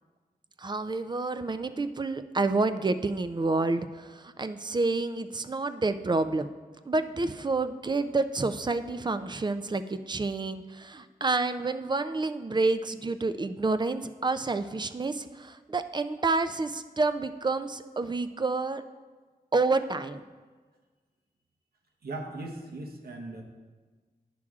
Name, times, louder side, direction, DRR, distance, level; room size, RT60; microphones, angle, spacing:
voice 1, 0.6-6.5 6.9-18.8 19.5-20.2, right 3 dB, 30° right, 11 dB, 0.4 m, -29 dB
voice 2, 22.0-23.4, right 2 dB, 80° right, 1 dB, 0.9 m, -39 dB
9.7 x 5.9 x 2.4 m, 1.4 s
wide cardioid pair, 60°, 16 cm